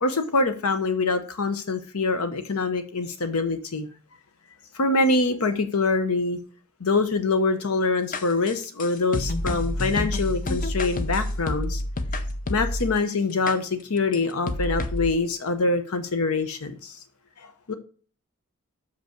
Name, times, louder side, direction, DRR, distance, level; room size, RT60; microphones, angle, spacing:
voice 1, 0.0-3.9 4.7-6.4 6.8-11.8 12.5-17.0 17.4-17.7, left 3 dB, 75° left, 9 dB, 0.9 m, -25 dB
sound 1, 8.1-13.0 13.5-13.6 14.1-14.2 14.5-15.1, left 1 dB, 40° left, 0.7 m, -28 dB
6.7 x 5.3 x 5.0 m, 0.40 s
head